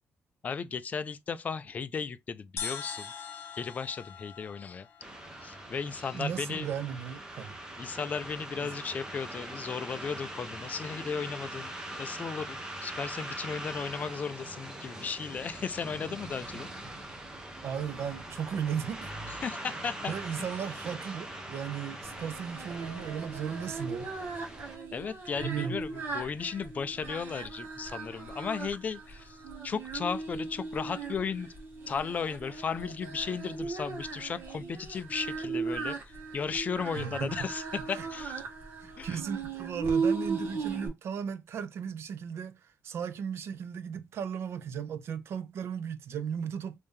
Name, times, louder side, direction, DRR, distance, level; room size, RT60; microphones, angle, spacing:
voice 1, 0.4-3.1 3.5-4.9 5.4-6.7 7.8-16.7 19.4-20.5 24.9-29.4 29.6-31.5 31.9-36.0 36.3-38.4 39.0-39.2, left 6 dB, 30° left, 0.3 m, -35 dB
sound 1, 2.6-6.1, left 6 dB, 50° left, 1.3 m, -42 dB
sound 2, 5.0-24.8, right 1 dB, 15° right, 0.7 m, -42 dB
voice 2, 6.1-7.5 8.6-8.7 17.6-19.1 20.1-24.1 25.4-25.8 36.9-37.5 37.9-38.1 38.8-46.8, right 7 dB, 55° right, 0.5 m, -36 dB
Singing, 22.1-40.9, right 4 dB, 40° right, 1.4 m, -37 dB
3.3 x 2.7 x 3.5 m
cardioid pair, 170°, 5 cm